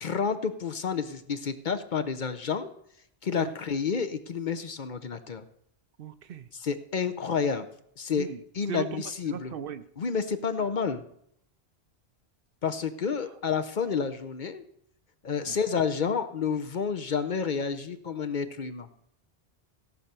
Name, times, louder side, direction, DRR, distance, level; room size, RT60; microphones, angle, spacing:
voice 1, 0.0-2.7 3.2-5.4 6.5-7.7 8.0-8.3 8.5-9.5 10.0-11.0 12.6-14.6 15.2-18.9, left 6 dB, 50° left, 9 dB, 0.8 m, -30 dB
voice 2, 6.0-6.5 8.1-8.4 8.7-9.8 10.6-10.7 15.5-15.6, right 8 dB, 65° right, 13 dB, 0.7 m, -37 dB
16.5 x 5.7 x 6.7 m, 0.73 s
omnidirectional pair, 1.1 m